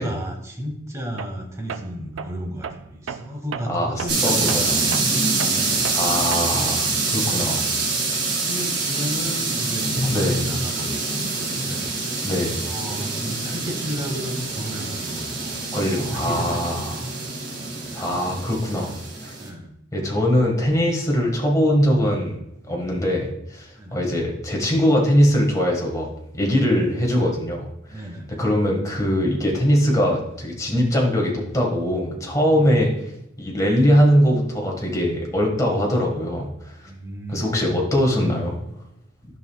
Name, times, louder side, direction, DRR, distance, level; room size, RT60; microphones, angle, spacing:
voice 1, 0.0-4.8 5.5-5.8 8.4-11.2 11.6-11.9 12.6-16.6 17.9-18.2 19.4-19.7 23.8-24.0 27.9-28.4 32.5-32.8 33.4-33.6 36.8-37.5, equal, 15° right, 0 dB, 1.6 m, -33 dB
Tools, 1.2-1.4 1.7-6.7, right 6 dB, 85° right, 0.4 m, -35 dB
voice 2, 3.7-4.8 5.7-7.6 10.1-10.4 12.2-12.6 15.7-17.0 17.9-18.9 19.2-19.3 19.9-22.4 22.7-26.1 26.3-28.0 28.3-32.9 33.4-36.5 37.3-38.6, equal, 15° left, -1 dB, 1.7 m, -21 dB
sound 1, 4.1-19.5, right 3 dB, 60° right, 2.5 m, -25 dB
12.0 x 5.3 x 2.4 m, 0.80 s
head